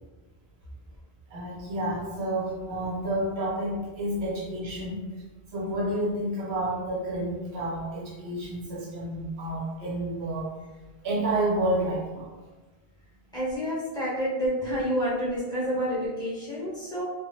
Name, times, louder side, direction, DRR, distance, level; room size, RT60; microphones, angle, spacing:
voice 1, 1.3-5.0 5.5-10.5 11.0-12.3, right 1 dB, 70° right, -4 dB, 1.0 m, -30 dB
voice 2, 13.3-17.0, equal, 5° left, -8 dB, 1.1 m, -29 dB
2.8 x 2.5 x 2.7 m, 1.2 s
omnidirectional pair, 1.1 m